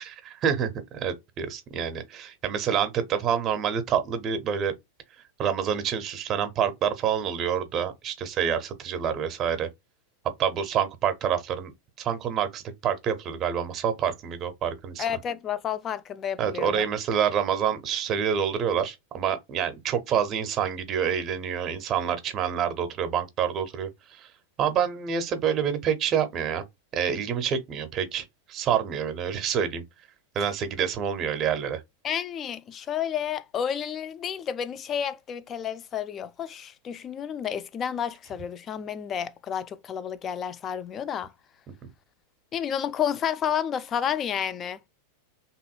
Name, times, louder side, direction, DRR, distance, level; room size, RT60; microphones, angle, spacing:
voice 1, 0.0-4.7 5.4-9.7 10.4-11.7 12.0-15.2 16.4-24.3 24.6-26.6 26.9-29.8 30.3-31.8, right 8 dB, 30° right, 0.6 m, -27 dB
voice 2, 15.0-16.8 32.0-41.3 42.5-44.8, left 8 dB, 25° left, 0.3 m, -30 dB
2.8 x 2.6 x 2.4 m
figure-of-eight pair, 90°, 0 cm